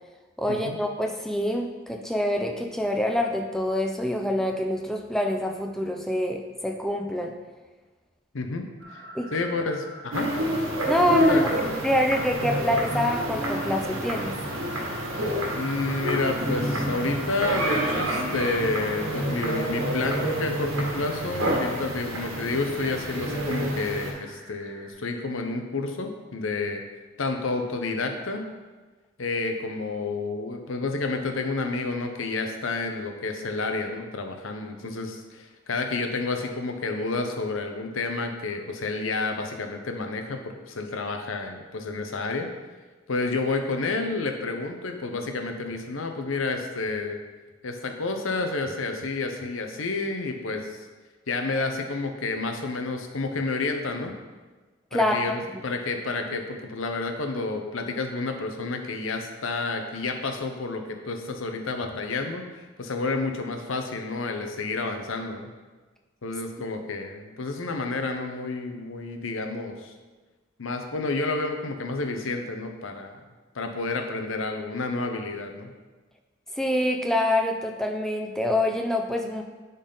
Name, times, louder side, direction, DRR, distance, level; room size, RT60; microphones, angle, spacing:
voice 1, 0.4-7.3 9.1-9.3 10.8-11.4 11.8-14.4 54.9-55.2 76.6-79.4, left 1 dB, ahead, 2 dB, 0.5 m, -26 dB
voice 2, 8.3-8.7 8.9-9.0 9.3-10.3 11.3-11.4 15.5-26.8 27.2-28.5 29.2-42.5 43.1-47.2 47.6-50.8 51.3-54.1 54.9-55.3 55.6-62.5 62.8-65.5 66.2-69.9 70.6-73.2 73.5-75.7, left 3 dB, 75° left, 5 dB, 0.8 m, -30 dB
sound 1, 8.8-24.9, right 1 dB, 55° right, 1.5 m, -46 dB
sound 2, 10.1-24.1, right 1 dB, 85° right, 1.7 m, -28 dB
10.0 x 4.1 x 3.9 m, 1.3 s
head